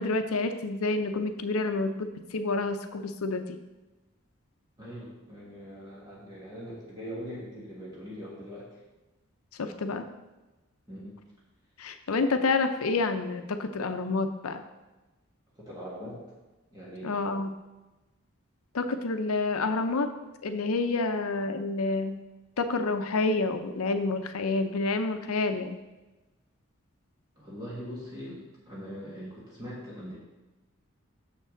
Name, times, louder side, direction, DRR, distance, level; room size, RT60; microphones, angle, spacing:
voice 1, 0.0-3.6 9.6-10.1 11.8-14.6 17.0-17.6 18.7-20.1 20.4-22.2 22.6-25.8, left 3 dB, 85° left, 8 dB, 0.6 m, -28 dB
voice 2, 4.8-8.8 10.9-11.1 15.6-16.2 16.7-17.1 27.4-30.2, equal, 20° right, -7 dB, 1.8 m, -41 dB
6.9 x 6.5 x 3.8 m, 1.1 s
head